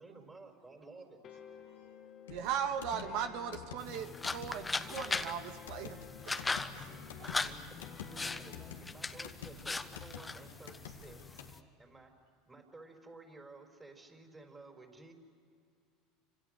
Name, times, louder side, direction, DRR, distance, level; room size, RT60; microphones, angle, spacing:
voice 1, 0.0-1.2 7.5-11.4 11.8-12.1 12.4-15.1, right 3 dB, 20° right, 4 dB, 4.9 m, -54 dB
sound 1, 1.2-9.0, left 7 dB, 45° left, 2.0 m, -53 dB
voice 2, 1.3-2.5 6.2-7.7 8.0-8.8, right 3 dB, 90° right, 1 dB, 5.2 m, -61 dB
sound 2, 2.3-11.5, left 7 dB, 85° left, 2.0 m, -50 dB
voice 3, 2.3-6.0, right 8 dB, 65° right, 7 dB, 1.5 m, -38 dB
sound 3, 3.8-11.6, left 3 dB, 15° left, 1.2 m, -40 dB
29.5 x 26.5 x 6.7 m, 2.3 s
hypercardioid pair, 85°, 0 cm